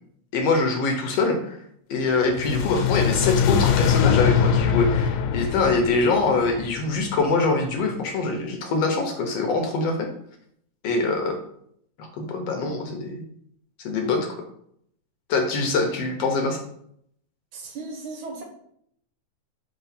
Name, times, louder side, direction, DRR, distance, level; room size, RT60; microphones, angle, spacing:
voice 1, 0.3-1.6 1.9-10.1 10.8-11.4 12.0-13.2 13.8-14.3 15.3-16.6, left 3 dB, 70° left, 3 dB, 1.7 m, -24 dB
sound 1, 2.2-7.4, left 7 dB, 85° left, 2.0 m, -23 dB
voice 2, 17.5-18.4, right 3 dB, 80° right, 1 dB, 2.8 m, -36 dB
5.7 x 3.7 x 5.6 m, 0.70 s
omnidirectional pair, 3.4 m